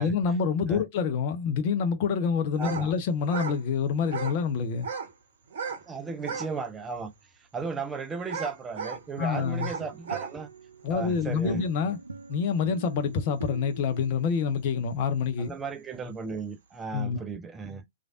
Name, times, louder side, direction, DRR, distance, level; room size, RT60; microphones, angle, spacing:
voice 1, 0.0-4.9 9.2-9.7 10.8-12.0 12.3-15.5 16.9-17.2, left 6 dB, 40° left, 0.6 m, -27 dB
voice 2, 2.6-2.9 5.9-7.1 7.4-10.5 10.9-11.6 15.4-17.8, right 5 dB, 15° right, 0.5 m, -35 dB
sound 1, 2.6-2.9 3.2-3.6 4.0-4.4 4.7-5.1 5.5-5.8 6.2-6.5 7.1-7.2 8.2-9.0 9.5-10.3, right 5 dB, 50° right, 0.8 m, -35 dB
sound 2, 9.0-14.5, right 3 dB, 75° right, 0.4 m, -42 dB
3.2 x 2.4 x 2.4 m
figure-of-eight pair, 110°, 0 cm